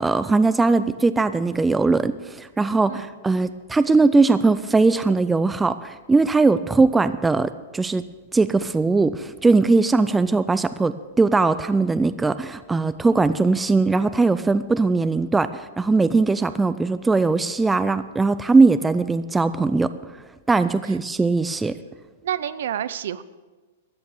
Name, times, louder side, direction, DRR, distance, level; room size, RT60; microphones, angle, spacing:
voice 1, 0.0-8.0 8.3-19.9 20.5-21.7, right 3 dB, 5° right, 12 dB, 0.3 m, -20 dB
voice 2, 22.2-23.2, right 10 dB, 70° right, 15 dB, 0.6 m, -29 dB
14.0 x 8.9 x 7.1 m, 1.3 s
supercardioid pair, 165°, 0 cm